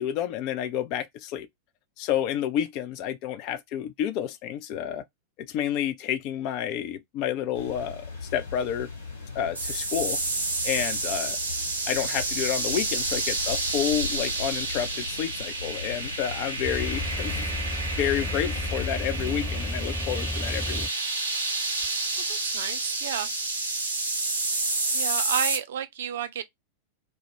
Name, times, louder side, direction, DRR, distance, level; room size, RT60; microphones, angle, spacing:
voice 1, 0.0-1.5 2.0-5.0 5.5-8.9 9.3-10.2 10.6-11.4 11.9-17.5 18.0-20.9, left 10 dB, 40° left, 0.3 m, -30 dB
sound 1, 7.5-19.7, left 4 dB, 80° left, 0.9 m, -40 dB
sound 2, 9.6-25.6, right 3 dB, 75° right, 0.7 m, -30 dB
sound 3, 16.6-20.9 21.8-21.9, left 1 dB, 15° left, 0.8 m, -32 dB
voice 2, 22.3-23.3 24.9-26.4, right 9 dB, 60° right, 0.3 m, -31 dB
2.1 x 2.1 x 2.9 m
figure-of-eight pair, 90°, 0 cm